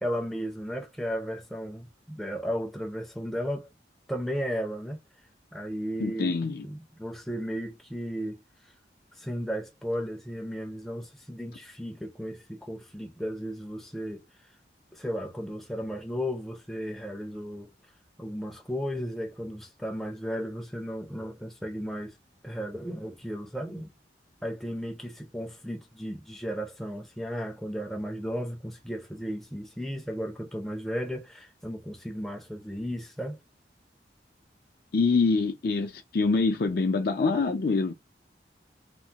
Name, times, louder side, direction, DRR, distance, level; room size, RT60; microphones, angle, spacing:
voice 1, 0.0-3.7 4.1-5.0 5.5-6.4 6.6-8.4 9.2-14.3 14.9-17.7 18.2-22.2 22.4-23.9 24.4-33.4, equal, ahead, 0.5 m, -34 dB
voice 2, 6.0-6.6 34.9-37.9, left 4 dB, 55° left, 0.5 m, -25 dB
3.2 x 2.1 x 2.8 m
head